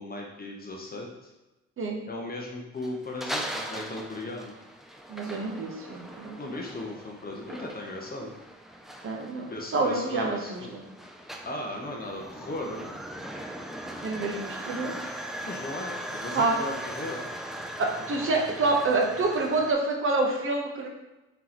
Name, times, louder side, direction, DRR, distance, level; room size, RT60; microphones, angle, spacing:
voice 1, 0.0-1.3 2.1-4.5 6.4-8.3 9.5-10.8 11.4-12.9 15.4-17.3, left 1 dB, 30° left, -1 dB, 0.8 m, -37 dB
sound 1, 2.8-19.7, right 1 dB, ahead, 0.4 m, -39 dB
voice 2, 5.1-6.4 9.0-9.5 9.7-10.4 10.7-10.9 14.0-14.9 16.3-16.6 18.1-20.9, right 3 dB, 45° right, 0 dB, 0.9 m, -27 dB
3.9 x 3.7 x 3.0 m, 1.0 s
cardioid pair, 90°, 30 cm